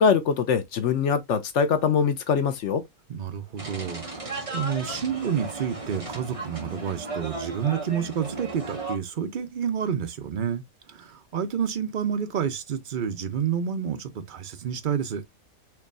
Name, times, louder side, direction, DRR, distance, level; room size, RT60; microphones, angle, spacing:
voice 1, 0.0-2.8, left 6 dB, 65° left, 0.9 m, -23 dB
voice 2, 3.1-15.2, right 8 dB, 50° right, 0.7 m, -29 dB
sound 1, 3.6-9.0, right 2 dB, 25° right, 1.6 m, -35 dB
4.6 x 3.2 x 2.5 m
omnidirectional pair, 1.4 m